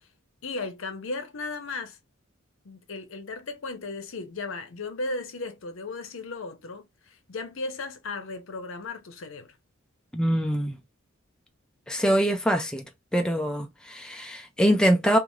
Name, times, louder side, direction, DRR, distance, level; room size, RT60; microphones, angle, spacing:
voice 1, 0.4-2.0 2.6-9.5, left 3 dB, 65° left, 0.7 m, -36 dB
voice 2, 10.1-10.8 11.9-12.8 13.1-15.2, equal, 5° left, 0.3 m, -24 dB
2.4 x 2.4 x 3.0 m
head